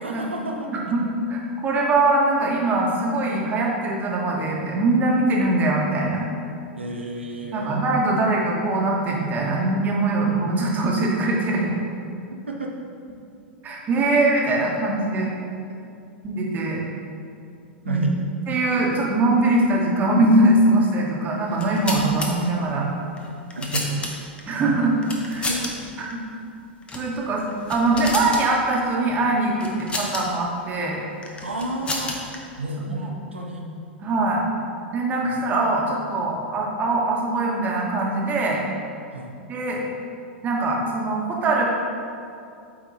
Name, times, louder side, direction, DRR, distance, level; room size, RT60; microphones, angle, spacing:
voice 1, 0.0-0.7 6.8-7.9 12.5-12.8 17.8-18.1 23.5-24.0 25.5-25.7 31.4-32.2 32.6-33.7 35.2-35.3 39.1-39.4, right 2 dB, 90° right, 0 dB, 0.7 m, -30 dB
voice 2, 0.7-6.3 7.5-11.8 13.6-15.3 16.2-16.8 17.8-18.0 18.5-22.9 24.4-25.0 25.2-25.5 26.0-26.2 26.9-27.4 27.7-31.0 32.9-33.1 34.0-34.4 34.9-38.6 39.5-39.8 40.4-41.7, right 2 dB, 25° right, -2 dB, 1.4 m, -22 dB
sound 1, 21.5-22.3 23.2-24.4 25.0-25.7 26.0-26.1 26.8-27.1 27.5-28.4 29.6-30.2 31.2-32.4, left 2 dB, 15° left, 0.9 m, -30 dB
8.5 x 3.6 x 4.1 m, 2.5 s
figure-of-eight pair, 95°, 6 cm